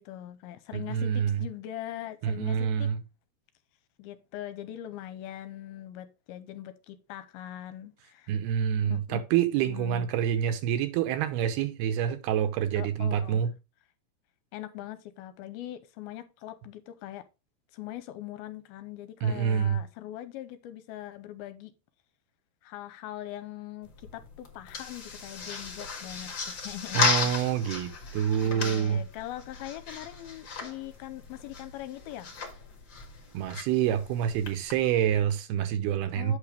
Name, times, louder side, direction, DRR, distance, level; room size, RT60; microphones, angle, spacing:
voice 1, 0.0-2.9 4.0-8.3 8.8-9.2 9.6-10.1 12.8-13.4 14.5-17.3 17.7-21.7 22.6-27.3 28.4-32.3 36.1-36.4, left 13 dB, 80° left, 2.4 m, -41 dB
voice 2, 0.7-1.4 2.2-3.0 8.3-13.5 19.2-19.8 26.9-29.0 33.3-36.4, right 9 dB, 80° right, 2.8 m, -27 dB
sound 1, 23.8-34.7, left 4 dB, 45° left, 1.6 m, -35 dB
8.5 x 5.9 x 3.3 m
omnidirectional pair, 4.6 m